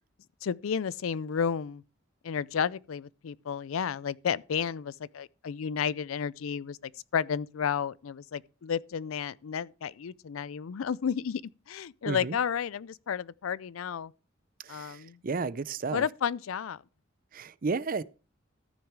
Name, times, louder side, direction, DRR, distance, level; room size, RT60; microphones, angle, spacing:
voice 1, 0.4-1.8 2.2-11.4 11.7-14.1 14.7-15.2 15.9-16.8, left 7 dB, 90° left, 0.4 m, -32 dB
voice 2, 12.0-12.4 14.6-16.1 17.3-18.0, right 4 dB, 45° right, 0.5 m, -33 dB
14.0 x 6.2 x 4.7 m
head